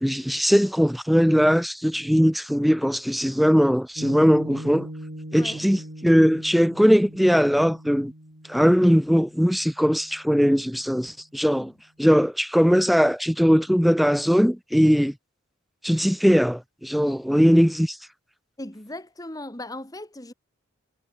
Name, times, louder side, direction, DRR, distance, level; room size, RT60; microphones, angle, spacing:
voice 1, 0.0-4.9 5.3-8.1 8.5-11.7 12.0-15.1 15.8-18.0, equal, ahead, 0.3 m, -20 dB
Piano, 4.0-10.6, equal, 60° right, 4.6 m, -40 dB
voice 2, 18.6-20.3, left 1 dB, 20° left, 1.8 m, -38 dB
head